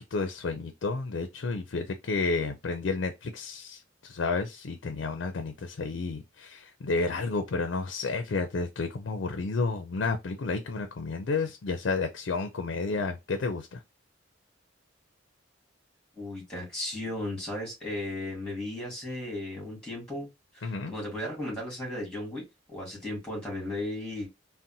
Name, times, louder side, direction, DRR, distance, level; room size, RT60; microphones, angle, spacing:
voice 1, 0.1-13.8 20.6-20.9, left 3 dB, 70° left, 0.4 m, -31 dB
voice 2, 16.2-20.3 20.5-22.4 22.7-24.3, left 1 dB, 5° left, 2.0 m, -35 dB
3.9 x 2.1 x 2.7 m
head